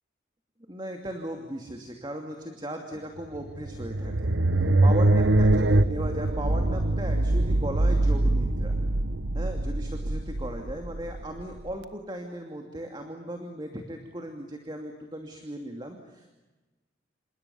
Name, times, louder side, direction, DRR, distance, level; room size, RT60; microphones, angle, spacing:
voice 1, 0.7-4.3 4.8-8.7 9.3-16.4, right 1 dB, 25° right, 3 dB, 2.7 m, -37 dB
sound 1, 3.3-11.7, right 2 dB, 75° right, 1.2 m, -24 dB
29.0 x 28.0 x 7.2 m, 1.2 s
head